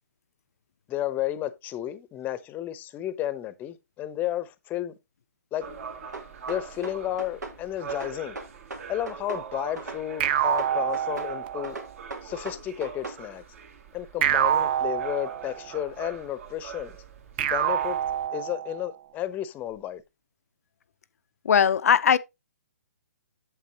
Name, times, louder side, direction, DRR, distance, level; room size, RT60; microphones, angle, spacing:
voice 1, 0.9-4.9 5.5-5.7 6.5-8.4 8.9-11.8 12.2-13.4 13.9-16.9 17.4-18.0 18.3-20.0, left 12 dB, 20° left, 0.8 m, -32 dB
sound 1, 5.6-18.3, right 7 dB, 55° right, 2.1 m, -43 dB
sound 2, 6.1-7.6 7.9-9.5 9.8-11.3 11.6-13.2, right 3 dB, 85° right, 2.3 m, -38 dB
sound 3, 10.2-11.8 14.2-15.8 17.4-18.9, right 10 dB, 35° right, 0.6 m, -26 dB
voice 2, 21.4-22.2, left 8 dB, 60° left, 0.6 m, -19 dB
8.2 x 7.4 x 2.8 m
figure-of-eight pair, 130°, 9 cm